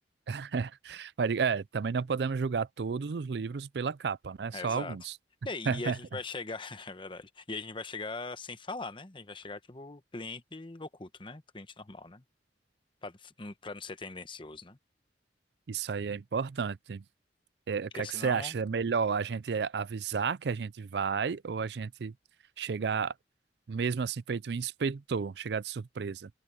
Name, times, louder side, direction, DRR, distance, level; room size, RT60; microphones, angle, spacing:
voice 1, 0.3-5.1 5.7-6.0 15.7-17.0 17.7-22.1 22.6-23.1 23.7-26.3, right 5 dB, 70° right, 0.4 m, -32 dB
voice 2, 4.5-5.0 5.4-12.2 13.0-14.8 17.9-18.5, left 3 dB, 30° left, 1.0 m, -41 dB
open air
head